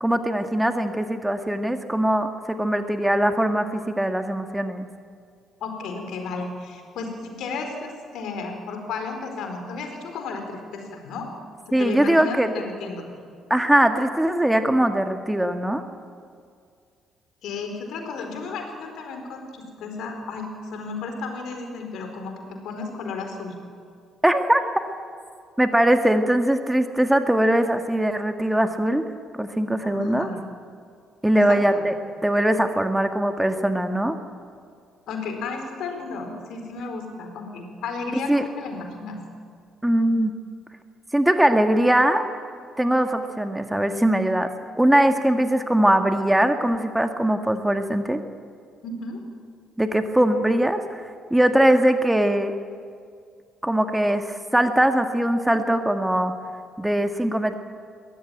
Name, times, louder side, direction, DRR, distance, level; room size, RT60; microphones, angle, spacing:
voice 1, 0.0-4.9 11.7-12.5 13.5-15.8 24.2-24.6 25.6-29.0 29.4-30.3 31.2-31.9 32.2-34.2 38.3-38.4 39.8-40.3 41.1-42.3 42.8-44.5 44.8-48.2 49.8-51.0 51.3-52.5 53.6-56.3 56.8-57.5, right 1 dB, 10° right, 7 dB, 1.7 m, -21 dB
voice 2, 5.6-11.3 11.7-13.0 17.4-23.6 29.8-30.4 31.3-31.6 35.1-39.2 48.8-49.2, left 4 dB, 60° left, 4 dB, 4.4 m, -33 dB
22.5 x 17.0 x 9.0 m, 2.2 s
figure-of-eight pair, 45°, 0 cm